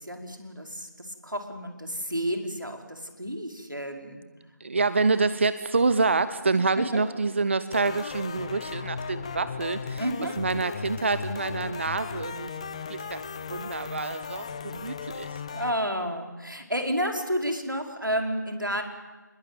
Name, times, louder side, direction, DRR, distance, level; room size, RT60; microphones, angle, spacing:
voice 1, 0.0-4.2 6.8-7.0 10.0-10.3 15.5-18.8, equal, 90° right, 4 dB, 5.1 m, -31 dB
voice 2, 4.6-10.0 10.4-12.5 12.9-15.3, right 3 dB, 35° right, 14 dB, 0.8 m, -27 dB
sound 1, 7.7-15.7, left 5 dB, 20° left, 0.8 m, -36 dB
27.5 x 20.5 x 9.3 m, 1.2 s
figure-of-eight pair, 160°, 10 cm